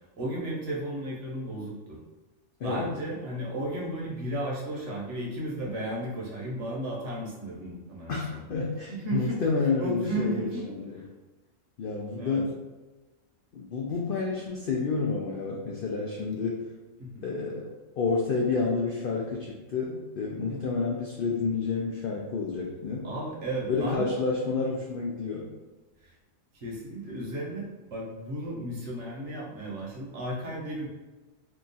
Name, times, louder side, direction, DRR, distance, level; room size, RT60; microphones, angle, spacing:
voice 1, 0.2-2.0 2.6-8.4 8.9-9.4 9.8-10.6 10.9-11.0 12.2-12.5 14.0-14.1 17.0-17.2 20.5-20.7 23.0-24.1 26.0-26.1 26.5-30.9, right 1 dB, 60° right, -3 dB, 1.1 m, -34 dB
voice 2, 8.1-11.0 11.8-12.6 13.5-16.6 17.2-23.1 23.7-25.5, left 4 dB, 70° left, -2 dB, 0.5 m, -29 dB
2.9 x 2.3 x 3.9 m, 1.2 s
omnidirectional pair, 1.4 m